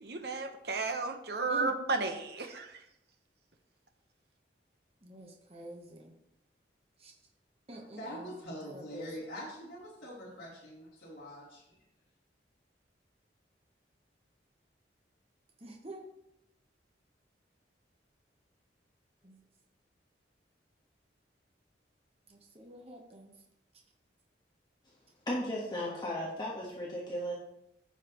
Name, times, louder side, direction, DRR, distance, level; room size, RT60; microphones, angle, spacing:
voice 1, 0.0-2.7, right 3 dB, 60° right, 5 dB, 1.0 m, -33 dB
voice 2, 5.0-6.1 7.0-7.1 7.7-8.3 8.6-9.1 15.6-16.0 19.2-19.4 22.3-23.3, equal, 30° right, 1 dB, 1.1 m, -46 dB
voice 3, 7.7-11.6, equal, 55° left, -8 dB, 3.1 m, -44 dB
voice 4, 25.3-27.4, equal, 25° left, -5 dB, 1.4 m, -35 dB
15.0 x 5.8 x 3.1 m, 0.83 s
head